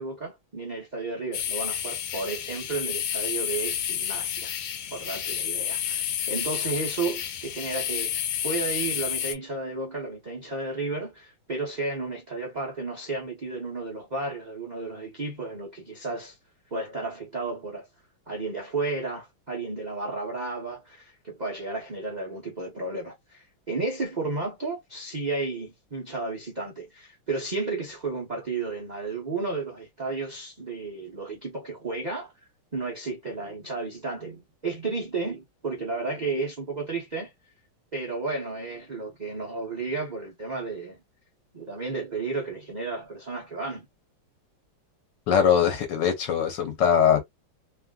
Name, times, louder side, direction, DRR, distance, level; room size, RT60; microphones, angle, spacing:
voice 1, 0.0-4.6 4.9-8.2 8.4-16.4 16.7-17.9 18.3-32.3 32.7-37.3 37.9-41.0 41.5-43.8, right 3 dB, 80° right, 0.4 m, -33 dB
sound 1, 1.3-9.3, left 10 dB, 85° left, 1.4 m, -30 dB
voice 2, 45.3-47.2, left 8 dB, 65° left, 1.4 m, -21 dB
3.2 x 2.5 x 2.3 m
omnidirectional pair, 2.2 m